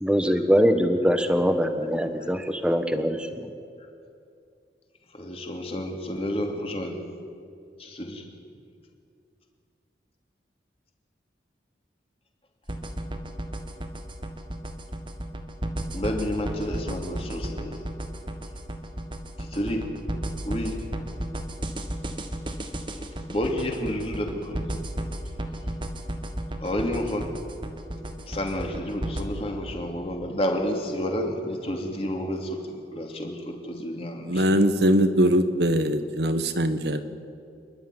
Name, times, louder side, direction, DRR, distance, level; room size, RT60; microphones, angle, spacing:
voice 1, 0.0-3.5, equal, 5° right, 1.2 m, -23 dB
voice 2, 5.1-7.0 7.8-8.2 15.9-17.8 19.4-19.9 20.4-20.8 23.0-24.7 26.6-27.3 28.3-34.4, equal, 35° left, 2.7 m, -30 dB
sound 1, 12.7-29.2, right 1 dB, 25° right, 1.4 m, -33 dB
voice 3, 34.2-37.0, right 1 dB, 70° right, 1.4 m, -21 dB
28.0 x 11.5 x 9.6 m
head